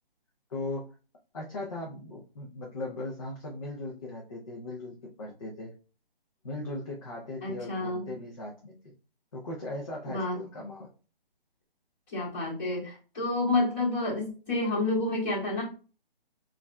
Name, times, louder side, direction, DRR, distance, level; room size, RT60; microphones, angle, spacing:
voice 1, 0.5-0.9 1.3-5.7 6.4-8.9 9.3-10.9, left 2 dB, 35° left, -3 dB, 0.7 m, -38 dB
voice 2, 7.4-8.1 10.1-10.4 12.1-15.6, left 2 dB, 20° left, -7 dB, 1.7 m, -29 dB
5.2 x 2.5 x 2.2 m, 0.36 s
hypercardioid pair, 165°, 30 cm